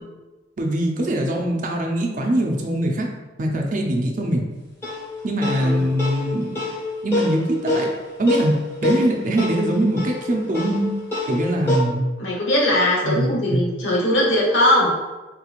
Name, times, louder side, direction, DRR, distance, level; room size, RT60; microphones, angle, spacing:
voice 1, 0.6-3.1 3.4-4.5 5.2-6.7 7.0-7.9 8.2-10.9 11.3-12.1 13.0-13.6, right 1 dB, 45° right, 1 dB, 0.4 m, -22 dB
sound 1, 4.8-11.8, left 2 dB, 15° left, 1.1 m, -26 dB
voice 2, 5.5-5.9 12.2-14.9, left 1 dB, 75° left, -5 dB, 1.1 m, -20 dB
3.7 x 2.9 x 2.4 m, 1.2 s
head